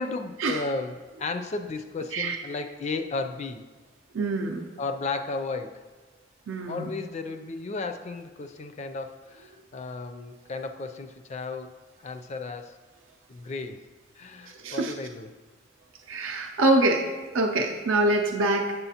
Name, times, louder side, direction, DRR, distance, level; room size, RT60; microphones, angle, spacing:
voice 1, 0.0-3.7 4.8-5.9 6.7-11.7 12.0-12.8 13.3-13.8 14.1-15.3, left 3 dB, 35° left, 8 dB, 0.4 m, -34 dB
voice 2, 4.1-4.7 6.5-6.9 14.5-14.9 16.1-18.7, right 2 dB, 75° right, 2 dB, 0.5 m, -25 dB
8.1 x 6.8 x 2.8 m, 1.3 s
head